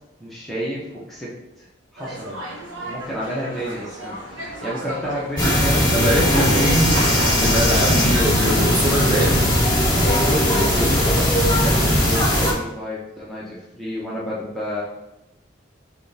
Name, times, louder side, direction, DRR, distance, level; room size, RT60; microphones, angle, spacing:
voice 1, 0.2-1.7 1.9-2.4 2.9-7.0 10.0-14.8, equal, ahead, -9 dB, 0.8 m, -30 dB
sound 1, 2.0-9.4, right 1 dB, 85° right, 1.0 m, -33 dB
sound 2, 5.4-12.5, equal, 20° left, 1.4 m, -18 dB
voice 2, 5.9-7.0 7.4-9.6, equal, 20° right, -4 dB, 1.1 m, -22 dB
3.6 x 3.4 x 4.0 m, 0.93 s
head